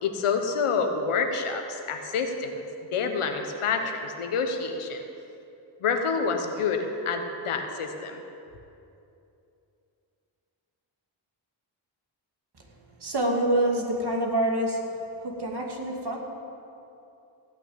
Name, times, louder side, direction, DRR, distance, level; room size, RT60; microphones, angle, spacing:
voice 1, 0.0-2.6 2.9-5.0 5.8-8.2, left 5 dB, 85° left, 5 dB, 1.2 m, -28 dB
voice 2, 13.0-14.8 15.2-16.2, right 1 dB, 50° right, 0 dB, 2.5 m, -26 dB
15.5 x 6.1 x 8.9 m, 2.7 s
cardioid pair, 45°, 49 cm